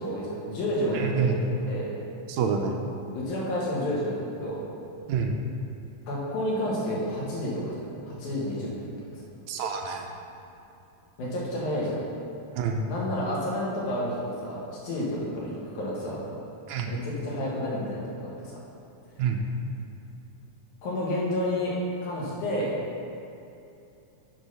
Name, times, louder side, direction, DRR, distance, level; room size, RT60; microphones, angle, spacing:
voice 1, 0.0-2.0 3.1-4.7 6.0-8.7 11.2-12.0 12.9-16.2 16.9-18.5 20.8-21.7 22.0-22.7, left 1 dB, 80° left, -5 dB, 3.0 m, -30 dB
voice 2, 0.9-1.4 2.3-2.8 5.1-5.4 9.5-10.1 12.6-12.8 16.7-16.9 19.2-19.5, right 6 dB, 80° right, 3 dB, 1.9 m, -27 dB
9.7 x 3.7 x 5.6 m, 2.7 s
omnidirectional pair, 3.4 m